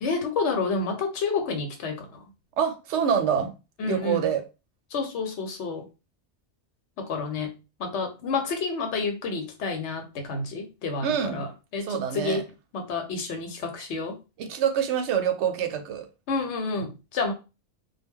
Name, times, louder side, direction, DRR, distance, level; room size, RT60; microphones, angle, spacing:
voice 1, 0.0-2.1 3.8-4.3 4.9-5.9 7.0-12.5 12.7-14.2 16.3-17.3, left 4 dB, 80° left, 1.0 m, -29 dB
voice 2, 2.6-3.5 3.8-4.4 11.0-11.4 11.8-12.4 14.4-16.1, right 8 dB, 80° right, 0.9 m, -26 dB
2.2 x 2.1 x 3.5 m
omnidirectional pair, 1.2 m